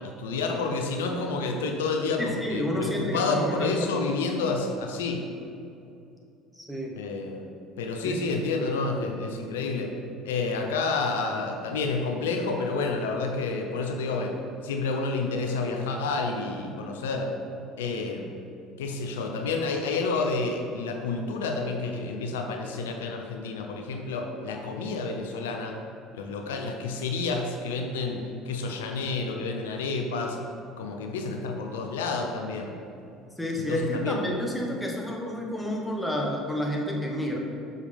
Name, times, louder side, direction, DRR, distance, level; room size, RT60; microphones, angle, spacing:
voice 1, 0.0-5.3 6.9-7.4 7.8-10.0 10.2-14.4 14.6-17.3 17.8-18.3 18.8-25.8 26.1-30.4 30.8-32.8 33.6-34.4, left 3 dB, 85° left, 3 dB, 0.5 m, -29 dB
voice 2, 2.2-3.9 6.6-6.9 8.0-8.1 33.4-37.4, equal, 5° left, -1 dB, 1.3 m, -30 dB
6.2 x 5.5 x 3.5 m, 2.6 s
hypercardioid pair, 75°, 0 cm